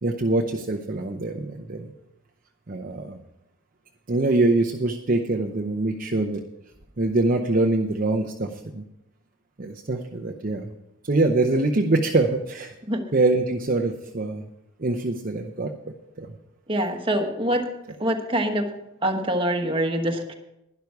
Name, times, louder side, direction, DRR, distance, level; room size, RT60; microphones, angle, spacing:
voice 1, 0.0-1.9 2.7-3.2 4.1-6.4 7.0-8.8 9.6-10.7 11.0-12.7 13.1-14.4 14.8-15.7 16.2-16.3, right 2 dB, 40° right, 1 dB, 0.7 m, -24 dB
voice 2, 16.7-17.6 18.0-18.6 19.0-20.3, right 1 dB, 25° right, 4 dB, 1.2 m, -24 dB
12.0 x 11.0 x 4.7 m, 0.86 s
head